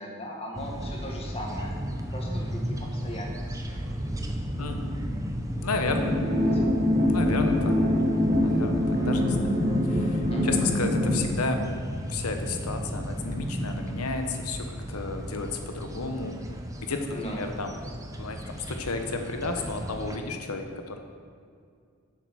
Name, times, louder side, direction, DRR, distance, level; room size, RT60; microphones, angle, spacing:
voice 1, 0.0-1.7 2.1-3.9 6.3-6.7 10.3-10.4 17.1-17.4, equal, 25° left, -1 dB, 1.6 m, -39 dB
sound 1, 0.5-20.2, equal, 15° right, 0.7 m, -34 dB
voice 2, 4.6-4.9 5.6-6.1 7.1-7.8 8.4-9.5 9.8-11.8 12.1-16.3 16.8-17.7 18.2-21.0, left 3 dB, 80° left, 5 dB, 1.0 m, -32 dB
sound 2, 5.9-11.3, left 1 dB, 30° right, 2.2 m, -24 dB
7.8 x 7.5 x 6.2 m, 2.2 s
head